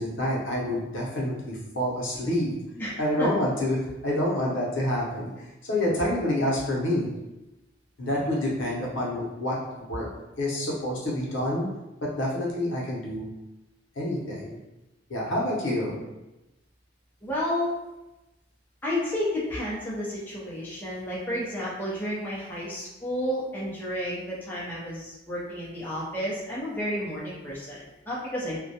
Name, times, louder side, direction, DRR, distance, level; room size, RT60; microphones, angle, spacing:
voice 1, 0.0-2.5 3.0-7.1 8.0-10.1 10.4-11.7 12.0-13.3 13.9-14.6 15.1-16.0, left 1 dB, 75° left, -4 dB, 0.7 m, -28 dB
voice 2, 2.8-3.3 15.7-16.0 17.2-17.8 18.8-28.6, equal, 10° left, -7 dB, 0.4 m, -31 dB
2.2 x 2.1 x 2.7 m, 1.0 s
head